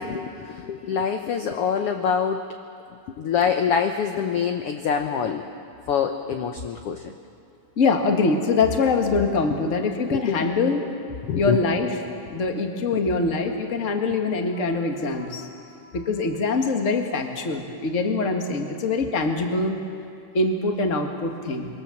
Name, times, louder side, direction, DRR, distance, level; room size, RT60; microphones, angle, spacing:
voice 1, 0.0-2.4 3.2-5.4 5.9-7.0 9.5-9.6 10.1-10.4 11.3-11.6, left 7 dB, 65° left, 5 dB, 1.5 m, -25 dB
voice 2, 7.8-10.9 11.3-11.9 12.3-15.5 15.8-19.7 20.3-21.7, left 3 dB, 30° left, 3 dB, 1.5 m, -23 dB
25.5 x 23.0 x 7.3 m, 2.4 s
omnidirectional pair, 3.7 m